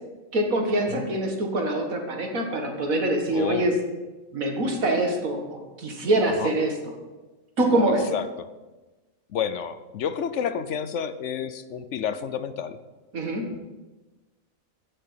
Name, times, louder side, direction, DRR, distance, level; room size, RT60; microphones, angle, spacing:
voice 1, 0.3-3.7 4.3-6.7 7.6-8.1 13.1-13.5, right 1 dB, 90° right, 2 dB, 2.3 m, -24 dB
voice 2, 3.3-3.7 6.4-6.5 8.1-8.5 9.3-12.8, left 8 dB, 65° left, 12 dB, 1.0 m, -30 dB
15.0 x 6.7 x 5.8 m, 1.2 s
omnidirectional pair, 1.4 m